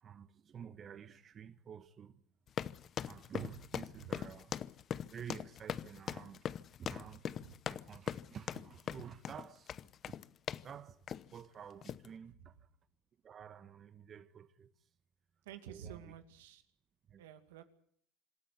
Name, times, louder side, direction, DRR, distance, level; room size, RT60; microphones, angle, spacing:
voice 1, 0.0-2.2 3.0-4.6 5.1-6.5 6.8-7.4 7.7-9.8 10.1-10.2 10.6-11.1 11.3-12.7 13.2-14.9 15.7-16.1 17.1-17.2, right 8 dB, 45° right, 1.3 m, -50 dB
sound 1, 2.5-10.7 11.1-11.4 11.8-12.1, left 9 dB, 45° left, 0.8 m, -41 dB
voice 2, 15.4-16.6 17.2-17.6, right 9 dB, 85° right, 2.3 m, -51 dB
26.5 x 13.0 x 9.7 m
hypercardioid pair, 80°, 0 cm